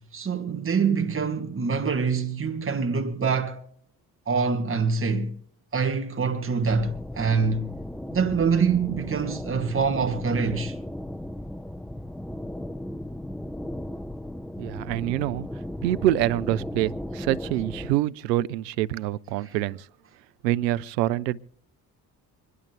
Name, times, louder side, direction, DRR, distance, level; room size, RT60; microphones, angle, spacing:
voice 1, 0.1-3.6 4.3-5.3 5.7-7.8 8.1-10.7, right 5 dB, 25° right, 1.6 m, -25 dB
sound 1, 6.7-18.0, left 1 dB, ahead, 0.7 m, -36 dB
voice 2, 14.6-15.5 15.8-19.9 20.4-21.4, right 14 dB, 85° right, 0.6 m, -26 dB
26.5 x 11.0 x 3.3 m
hypercardioid pair, 50°, 48 cm